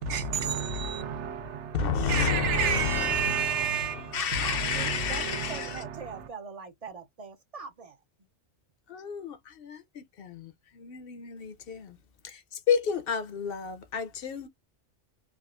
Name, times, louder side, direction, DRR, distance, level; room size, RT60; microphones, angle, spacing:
voice 1, 0.0-6.3, right 6 dB, 90° right, 1.0 m, -31 dB
voice 2, 1.7-5.8 8.9-9.8 10.2-12.0 12.2-12.4 12.7-14.5, left 6 dB, 65° left, 0.7 m, -31 dB
voice 3, 4.1-8.0, right 5 dB, 50° right, 0.4 m, -42 dB
3.5 x 2.4 x 2.3 m
omnidirectional pair, 1.2 m